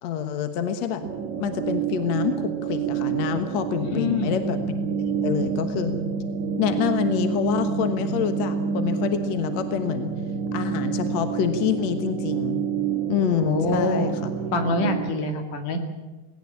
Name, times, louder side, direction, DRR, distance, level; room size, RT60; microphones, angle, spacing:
voice 1, 0.0-1.0 1.4-4.8 5.2-5.9 6.6-10.1 10.5-12.6 13.1-14.3, left 8 dB, 65° left, 8 dB, 2.4 m, -26 dB
sound 1, 1.0-15.1, right 6 dB, 65° right, 2.6 m, -28 dB
voice 2, 3.9-4.4 13.5-14.2 14.5-15.8, left 2 dB, 80° left, 5 dB, 3.9 m, -25 dB
19.5 x 18.5 x 8.6 m, 1.2 s
omnidirectional pair, 3.6 m